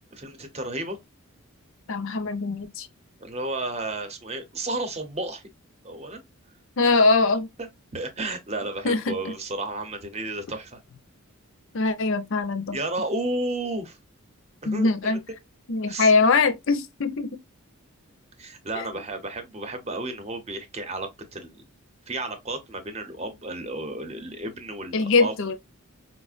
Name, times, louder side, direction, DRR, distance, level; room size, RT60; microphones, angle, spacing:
voice 1, 0.1-1.0 3.2-5.5 5.8-6.2 7.6-7.7 7.9-10.8 12.7-14.0 14.6-15.2 15.9-16.1 18.4-21.6 22.1-25.3, right 2 dB, 30° right, 0.7 m, -32 dB
voice 2, 1.9-2.9 6.8-7.5 8.8-9.3 11.7-12.8 14.7-15.2 15.7-17.4 18.8-18.9 24.9-25.6, left 3 dB, 60° left, 0.5 m, -22 dB
4.9 x 2.1 x 2.4 m
head